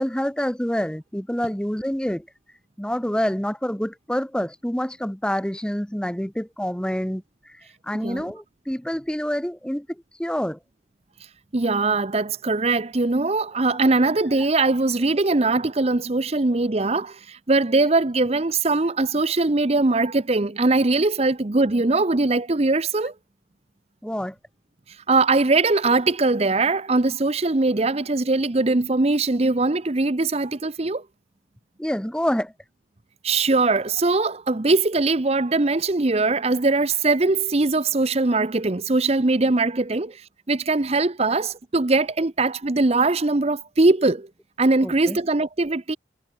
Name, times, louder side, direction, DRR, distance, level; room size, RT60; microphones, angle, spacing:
voice 1, 0.0-2.3 2.8-7.6 7.8-10.6 24.0-24.3 31.8-32.5 44.8-45.2, equal, 5° left, 1.0 m, -27 dB
voice 2, 7.9-8.3 11.5-23.1 25.1-31.0 33.2-40.2 40.5-44.3 44.6-46.0, right 3 dB, 35° right, 0.8 m, -21 dB
head